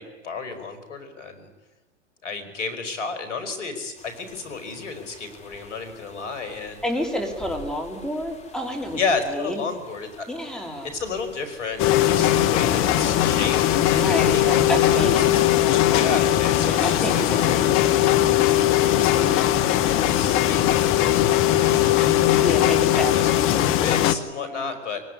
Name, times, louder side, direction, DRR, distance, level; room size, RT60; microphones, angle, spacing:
voice 1, 0.0-1.5 2.2-6.8 9.0-10.3 10.8-14.4 15.3-15.4 15.9-17.6 18.5-22.6 23.1-25.0, left 4 dB, 70° left, 9 dB, 5.2 m, -32 dB
sound 1, 4.0-21.7, left 2 dB, 20° left, 4.0 m, -45 dB
voice 2, 6.8-9.0 9.3-9.6 10.3-10.9 13.9-15.9 16.6-17.7 18.1-18.4 22.4-23.8 24.4-24.8, equal, ahead, 2 dB, 3.4 m, -29 dB
sound 2, 11.8-24.2, left 13 dB, 35° left, 1.3 m, -19 dB
23.5 x 18.5 x 9.7 m, 1.1 s
hypercardioid pair, 110°, 37 cm